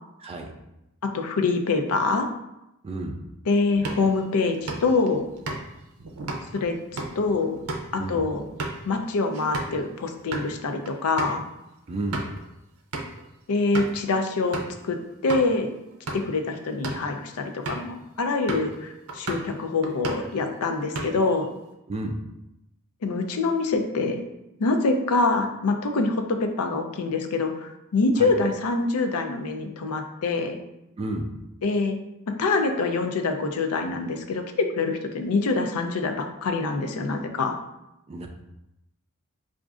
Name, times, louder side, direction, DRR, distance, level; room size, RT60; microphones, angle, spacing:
voice 1, 0.2-0.5 2.8-3.2 8.0-8.2 11.9-12.3 21.9-22.2 28.2-28.3 31.0-31.3 38.1-38.3, right 2 dB, 25° right, 3 dB, 0.3 m, -31 dB
voice 2, 1.0-2.3 3.5-5.3 6.5-7.6 7.9-8.4 8.9-11.4 13.5-15.7 16.1-21.5 23.0-24.2 24.6-30.6 31.6-32.0 32.4-37.6, left 3 dB, 85° left, 5 dB, 0.5 m, -25 dB
sound 1, 3.7-9.8 10.2-10.5 10.9-11.0 11.2-11.4 11.9-12.4 12.9-13.2 13.7-14.0 14.5-14.8 15.3-15.5 15.9-16.4 16.7-17.1 17.7-17.9 18.5-18.8 19.1-19.5 19.8-20.4 20.7-21.4, right 2 dB, 80° right, 0.6 m, -34 dB
4.9 x 2.5 x 2.4 m, 0.90 s
head